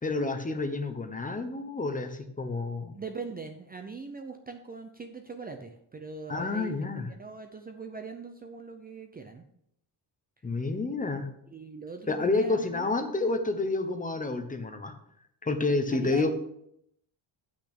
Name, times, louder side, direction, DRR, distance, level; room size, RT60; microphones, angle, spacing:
voice 1, 0.0-2.9 6.3-7.1 10.4-11.3 12.1-14.9 15.4-16.3, left 3 dB, 15° left, 8 dB, 0.8 m, -29 dB
voice 2, 2.9-6.7 7.2-9.4 11.5-13.0 15.9-16.3, right 4 dB, 20° right, 5 dB, 0.6 m, -41 dB
8.4 x 6.1 x 5.9 m, 0.73 s
cardioid pair, 160°, 47 cm